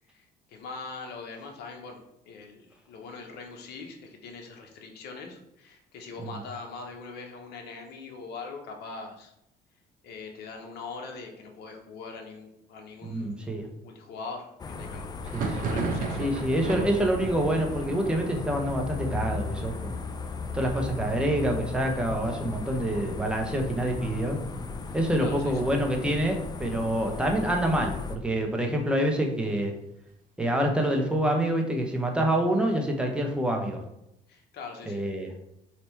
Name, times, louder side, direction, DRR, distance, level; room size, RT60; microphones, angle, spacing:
voice 1, 0.1-9.3 10.0-13.4 13.8-15.1 15.6-16.3 24.9-25.6 34.3-35.1, left 4 dB, 75° left, 3 dB, 0.9 m, -42 dB
voice 2, 13.0-13.7 15.3-15.6 16.2-20.0 20.5-24.4 24.9-29.7 30.4-33.8 34.9-35.3, right 1 dB, 5° right, 1 dB, 0.8 m, -27 dB
sound 1, 14.6-28.2, left 4 dB, 25° left, 0.3 m, -36 dB
Thunder, 15.2-24.7 25.0-25.7 25.9-26.9 27.3-29.0, right 4 dB, 55° right, 0.7 m, -38 dB
3.4 x 2.9 x 4.4 m, 0.81 s
cardioid pair, 110°, 17 cm